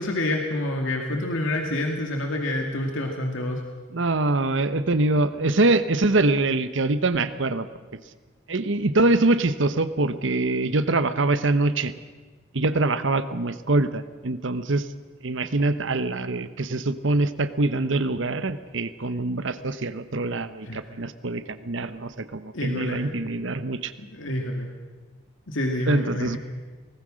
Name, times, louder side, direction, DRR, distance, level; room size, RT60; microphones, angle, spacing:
voice 1, 0.0-3.6 20.6-20.8 22.5-23.0 24.1-24.7 25.5-26.4, left 1 dB, 75° left, 2 dB, 2.3 m, -27 dB
voice 2, 3.9-7.7 8.5-11.9 12.5-14.9 15.2-23.9 25.9-26.4, right 2 dB, 70° right, 12 dB, 1.0 m, -24 dB
24.0 x 19.0 x 6.4 m, 1.4 s
head